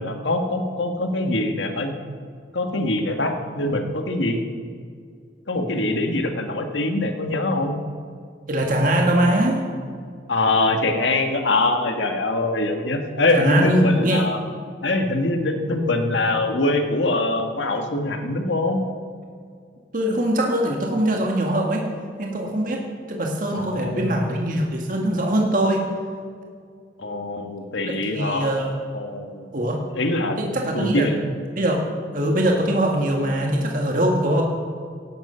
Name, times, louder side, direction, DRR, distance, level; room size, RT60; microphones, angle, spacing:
voice 1, 0.0-1.9 2.5-4.4 5.5-7.8 10.3-14.4 14.8-18.8 23.5-24.2 27.0-28.5 28.9-29.5 29.9-30.4 30.7-31.2, left 2 dB, 80° left, 5 dB, 1.6 m, -23 dB
voice 2, 8.5-9.6 13.3-14.2 19.9-21.8 22.2-25.9 28.1-28.7 29.5-29.8 30.4-31.1 31.5-31.8 32.1-34.4, right 1 dB, 45° right, 0 dB, 1.7 m, -22 dB
16.5 x 12.0 x 5.7 m, 2.2 s
head